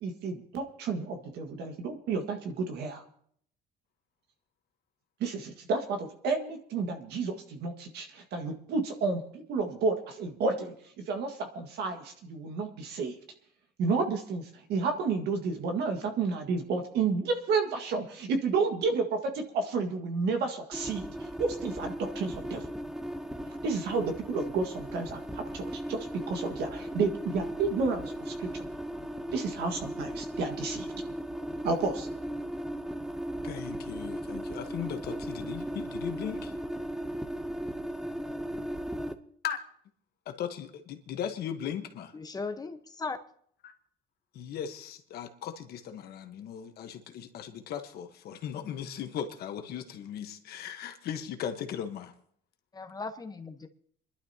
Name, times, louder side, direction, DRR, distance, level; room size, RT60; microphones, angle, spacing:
voice 1, 0.0-3.0 5.2-13.2 13.8-21.1 21.4-22.7 23.6-28.6 29.3-30.9 31.6-32.1, right 4 dB, 75° right, 5 dB, 1.8 m, -31 dB
sound 1, 20.7-39.1, right 1 dB, 5° right, 0.8 m, -37 dB
voice 2, 33.4-36.5 39.4-39.6 40.3-42.1 43.6-43.7 44.3-52.1, left 9 dB, 70° left, 7 dB, 1.3 m, -38 dB
voice 3, 42.1-43.2 52.7-53.7, left 4 dB, 20° left, 8 dB, 1.1 m, -37 dB
27.0 x 11.5 x 2.9 m, 0.63 s
cardioid pair, 110°, 17 cm